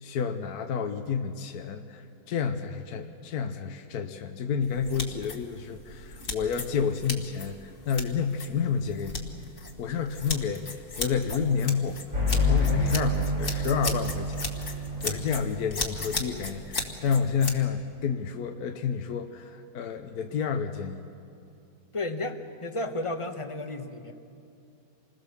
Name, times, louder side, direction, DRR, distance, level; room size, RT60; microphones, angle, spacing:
voice 1, 0.0-9.3 9.8-12.0 12.3-21.1, left 6 dB, 65° left, 6 dB, 1.3 m, -30 dB
sound 1, 4.6-17.6, left 3 dB, 40° left, 1.9 m, -37 dB
sound 2, 12.1-15.7, left 1 dB, 65° right, 7.1 m, -27 dB
voice 2, 21.9-24.1, left 2 dB, 20° left, 6 dB, 1.0 m, -33 dB
27.5 x 20.5 x 7.0 m, 2.6 s
omnidirectional pair, 1.9 m